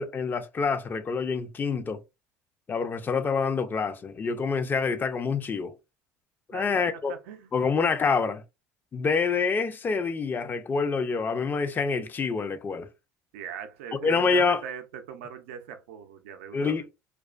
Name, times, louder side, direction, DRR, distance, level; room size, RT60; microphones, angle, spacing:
voice 1, 0.0-2.0 2.7-5.7 6.5-7.1 7.5-8.4 8.9-12.9 14.0-14.6 16.5-16.8, left 5 dB, 30° left, 0.5 m, -26 dB
voice 2, 6.5-7.5 13.3-16.9, right 7 dB, 85° right, 0.4 m, -40 dB
2.3 x 2.3 x 2.3 m
supercardioid pair, 85°, 7 cm